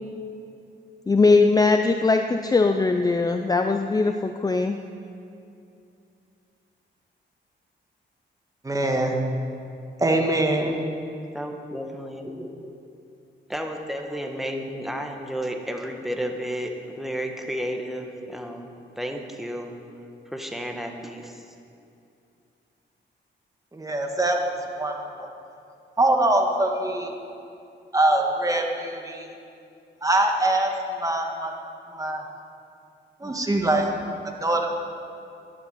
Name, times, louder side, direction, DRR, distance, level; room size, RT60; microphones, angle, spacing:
voice 1, 1.1-4.8, left 3 dB, 20° left, 7 dB, 0.5 m, -20 dB
voice 2, 8.6-9.2 10.0-10.8 23.7-24.4 24.8-25.3 26.0-27.1 27.9-29.3 30.0-30.7 31.0-31.5 31.9-32.2 33.2-33.9 34.4-34.7, right 1 dB, 15° right, 2 dB, 1.9 m, -23 dB
voice 3, 11.3-12.7 13.5-18.7 19.0-19.7 20.3-21.4, equal, ahead, 3 dB, 1.5 m, -32 dB
12.0 x 11.0 x 9.1 m, 2.6 s
cardioid pair, 115°, 19 cm